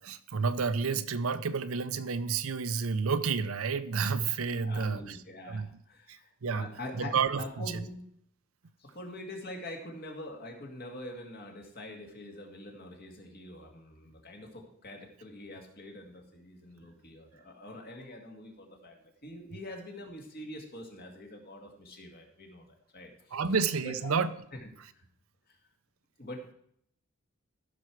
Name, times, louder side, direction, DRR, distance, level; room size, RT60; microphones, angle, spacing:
voice 1, 0.0-5.2 5.5-5.7 6.1-6.7 7.0-7.7 23.3-24.3, right 5 dB, 80° right, 11 dB, 0.6 m, -30 dB
voice 2, 4.5-7.1 7.4-8.0 8.8-23.4 23.8-24.2 24.5-25.1 25.5-25.6 26.2-26.5, left 1 dB, 50° left, 2 dB, 2.0 m, -45 dB
14.0 x 6.2 x 4.6 m, 0.70 s
head